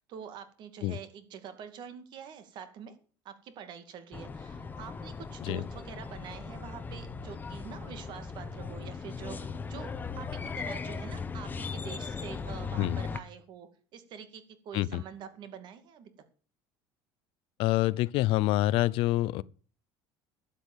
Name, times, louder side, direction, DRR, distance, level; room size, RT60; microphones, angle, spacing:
voice 1, 0.0-3.0 3.2-9.9 10.1-16.1, right 8 dB, 50° right, 2.4 m, -46 dB
sound 1, 4.1-13.2, left 5 dB, 20° left, 1.1 m, -38 dB
voice 2, 17.6-19.4, left 17 dB, 65° left, 0.6 m, -27 dB
12.0 x 8.4 x 7.3 m
cardioid pair, 135°, 10 cm